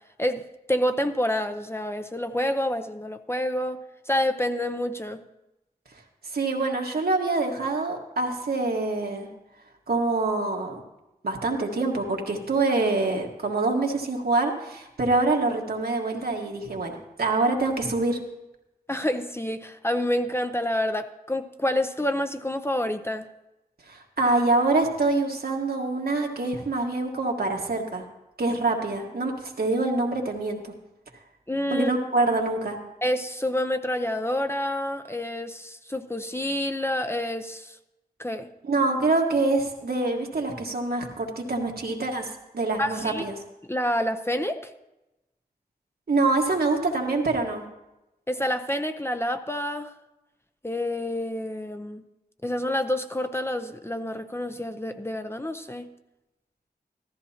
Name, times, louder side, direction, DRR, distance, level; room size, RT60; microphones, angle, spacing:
voice 1, 0.2-5.2 18.9-23.3 31.5-31.9 33.0-37.8 38.2-38.5 42.8-43.2 43.7-44.7 48.3-49.9 50.6-52.0 52.4-55.9, left 1 dB, 15° left, 7 dB, 0.6 m, -28 dB
voice 2, 6.3-9.3 9.9-10.8 11.2-18.2 23.9-28.0 28.4-30.7 31.7-32.8 38.6-43.3 46.1-47.6, right 3 dB, 70° right, 1 dB, 1.6 m, -25 dB
14.5 x 13.5 x 2.9 m, 0.97 s
wide cardioid pair, 60°, 16 cm